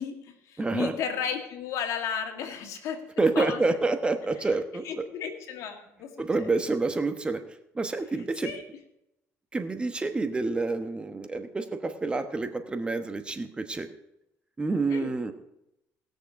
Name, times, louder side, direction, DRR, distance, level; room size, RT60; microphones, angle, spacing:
voice 1, 0.0-3.0 3.4-3.8 4.5-6.1 6.4-6.5 8.1-8.6 14.9-15.1, left 7 dB, 70° left, 4 dB, 2.2 m, -34 dB
voice 2, 0.6-0.9 3.2-4.9 6.2-7.4 7.7-8.5 9.5-13.9 14.6-15.3, right 3 dB, 20° right, 7 dB, 1.1 m, -28 dB
19.5 x 6.7 x 4.8 m, 0.85 s
cardioid pair, 100°, 6 cm